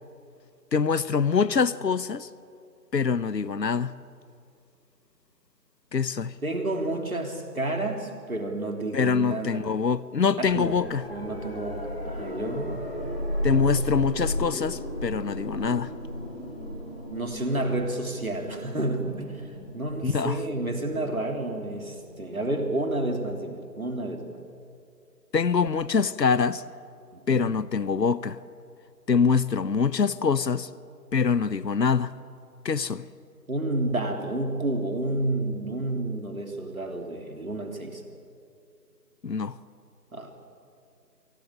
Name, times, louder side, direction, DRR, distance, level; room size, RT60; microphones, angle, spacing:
voice 1, 0.7-2.3 2.9-3.9 5.9-6.3 8.9-11.0 13.4-15.9 20.0-20.4 25.3-26.6 27.3-28.4 29.1-30.7 31.1-32.2 32.6-33.0 39.2-39.6, left 5 dB, 75° left, 0.9 m, -24 dB
voice 2, 6.4-9.7 10.4-10.8 11.1-12.8 17.1-19.5 19.7-24.4 27.1-27.5 33.5-38.0 40.1-40.3, right 1 dB, 55° right, 3.3 m, -30 dB
sound 1, 10.4-23.3 25.7-25.8, left 1 dB, 35° left, 3.7 m, -35 dB
24.5 x 18.0 x 8.7 m
figure-of-eight pair, 180°, 50 cm